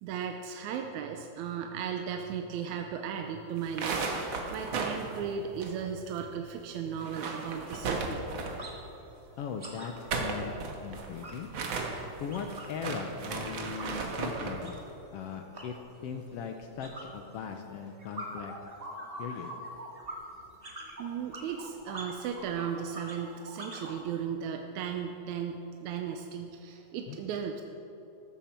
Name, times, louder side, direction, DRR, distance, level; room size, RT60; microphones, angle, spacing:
voice 1, 0.0-8.3 11.9-12.2 21.0-27.6, right 7 dB, 85° right, 4 dB, 2.1 m, -36 dB
sound 1, 3.6-6.2 6.5-6.6 6.9-8.7 9.8-14.7, right 4 dB, 55° right, 1.7 m, -35 dB
sound 2, 6.5-6.6 6.9-7.1 7.4-8.8 9.1-12.8 13.1-24.0, right 1 dB, 25° right, 1.5 m, -45 dB
voice 2, 9.4-10.6 10.8-11.5 12.2-14.8 15.1-15.8 16.0-18.5 19.2-19.5 27.1-27.2, left 6 dB, 70° left, 5 dB, 1.5 m, -39 dB
14.5 x 13.0 x 4.4 m, 2.9 s
omnidirectional pair, 3.3 m